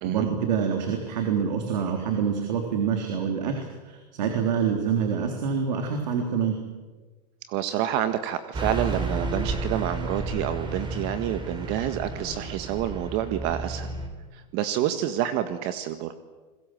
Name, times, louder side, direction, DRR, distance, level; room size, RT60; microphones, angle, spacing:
voice 1, 0.0-6.6, right 7 dB, 85° right, 3 dB, 3.8 m, -26 dB
voice 2, 7.5-13.9 14.3-16.1, right 11 dB, 55° right, 10 dB, 1.7 m, -28 dB
Car passing by / Truck, 8.5-14.1, right 2 dB, 20° right, 4.8 m, -32 dB
29.0 x 21.5 x 7.7 m, 1.3 s
supercardioid pair, 125°, 21 cm